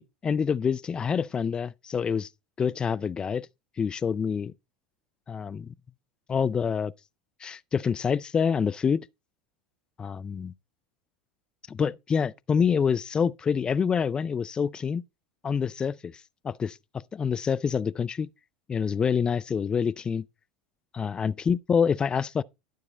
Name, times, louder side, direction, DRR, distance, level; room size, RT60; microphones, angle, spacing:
voice 1, 0.0-2.3 2.6-3.5 3.8-4.5 5.3-5.7 6.3-6.9 7.4-9.1 10.0-10.5 11.7-15.0 15.4-18.3 18.7-20.2 20.9-22.4, left 6 dB, 20° left, 0.3 m, -27 dB
11.5 x 4.7 x 4.0 m
figure-of-eight pair, 75°, 4 cm